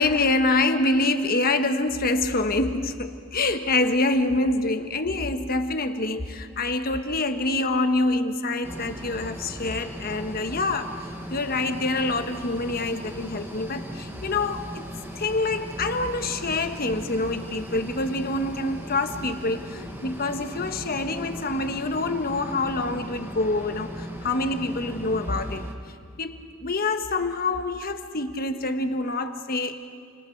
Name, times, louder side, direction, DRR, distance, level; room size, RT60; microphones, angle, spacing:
voice 1, 0.0-14.8 15.1-25.7 26.2-29.8, left 2 dB, 45° left, 7 dB, 1.3 m, -26 dB
sound 1, 8.6-25.7, equal, 10° right, 1.6 m, -38 dB
29.0 x 26.0 x 4.7 m, 2.2 s
head